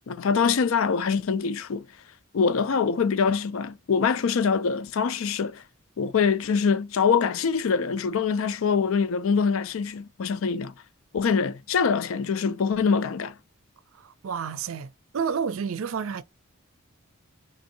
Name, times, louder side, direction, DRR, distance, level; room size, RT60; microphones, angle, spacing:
voice 1, 0.1-1.9 2.3-5.6 6.0-10.7 11.1-13.3, left 5 dB, 70° left, 0.4 m, -24 dB
voice 2, 14.0-16.2, right 6 dB, 70° right, 0.4 m, -30 dB
3.6 x 2.6 x 2.6 m
head